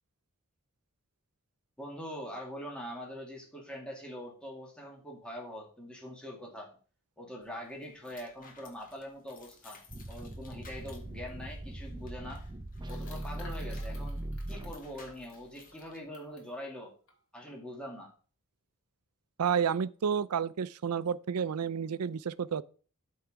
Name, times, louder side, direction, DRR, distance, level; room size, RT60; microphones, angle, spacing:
voice 1, 1.8-6.7 7.2-9.8 10.1-12.4 12.9-16.9 17.3-18.1, equal, 5° left, 2.3 m, -43 dB
sound 1, 7.4-16.0, left 2 dB, 40° left, 1.9 m, -56 dB
sound 2, 9.9-15.2, right 1 dB, 20° right, 0.7 m, -40 dB
sound 3, 11.0-11.1 11.3-11.4 12.8-16.5 17.1-17.2 17.5-17.8, left 2 dB, 65° left, 2.7 m, -55 dB
voice 2, 19.4-22.6, right 7 dB, 90° right, 0.5 m, -30 dB
12.5 x 4.7 x 5.0 m
head